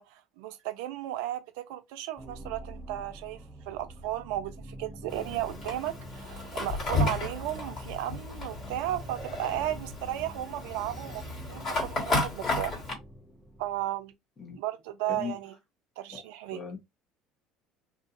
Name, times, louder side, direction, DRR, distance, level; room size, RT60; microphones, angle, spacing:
voice 1, 0.0-3.4 3.7-11.2 11.5-12.8 13.6-14.1 14.6-15.5 16.0-16.6, right 13 dB, 75° right, 0.4 m, -34 dB
sound 1, 2.2-14.0, right 1 dB, ahead, 0.8 m, -45 dB
Fire, 5.1-12.9, left 2 dB, 50° left, 1.7 m, -33 dB
voice 2, 15.1-15.4 16.1-16.2 16.5-16.8, left 5 dB, 30° left, 1.1 m, -38 dB
2.6 x 2.5 x 2.5 m
hypercardioid pair, 65°, 0 cm